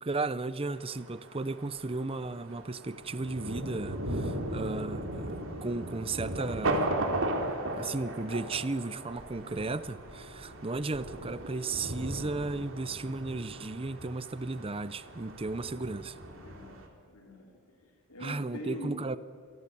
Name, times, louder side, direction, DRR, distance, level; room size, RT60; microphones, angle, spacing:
voice 1, 0.0-5.3 5.6-7.1 7.4-16.2 18.2-19.2, right 3 dB, 25° right, 0.7 m, -35 dB
Thunder, 0.7-16.9, right 1 dB, 65° right, 3.4 m, -37 dB
voice 2, 16.3-17.5 17.8-19.0, equal, 80° left, 3.5 m, -43 dB
27.0 x 19.0 x 8.5 m
head